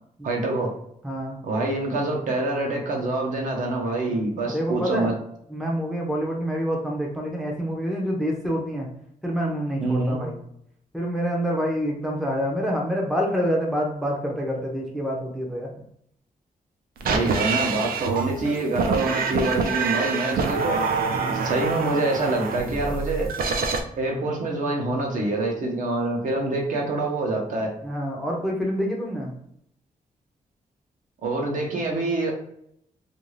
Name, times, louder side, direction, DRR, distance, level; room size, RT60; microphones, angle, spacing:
voice 1, 0.2-0.7 1.4-5.1 9.8-10.2 17.1-20.8 21.3-23.3 24.0-27.7 31.2-32.3, right 2 dB, 60° right, 0 dB, 0.8 m, -26 dB
voice 2, 1.0-1.4 4.1-5.1 5.5-8.9 9.2-10.4 10.9-15.7 17.1-17.3 21.1-21.5 27.8-29.3, equal, ahead, -1 dB, 0.5 m, -27 dB
sound 1, 17.0-23.8, right 5 dB, 85° right, 0.4 m, -26 dB
2.5 x 2.3 x 3.1 m, 0.72 s
wide cardioid pair, 175°, 15 cm